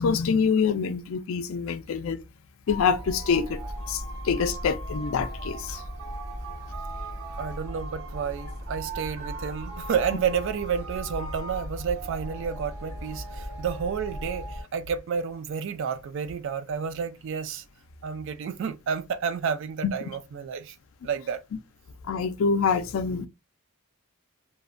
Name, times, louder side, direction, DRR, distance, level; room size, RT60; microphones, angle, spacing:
voice 1, 0.0-2.2 2.7-3.6 3.9-5.8 19.8-19.9 21.5-21.6 22.0-23.3, left 5 dB, 65° left, 0.3 m, -26 dB
sound 1, 2.7-14.6, right 1 dB, 85° right, 0.8 m, -37 dB
voice 2, 7.4-17.6 18.0-20.8 21.0-21.4, right 7 dB, 60° right, 0.3 m, -30 dB
2.8 x 2.1 x 2.4 m
head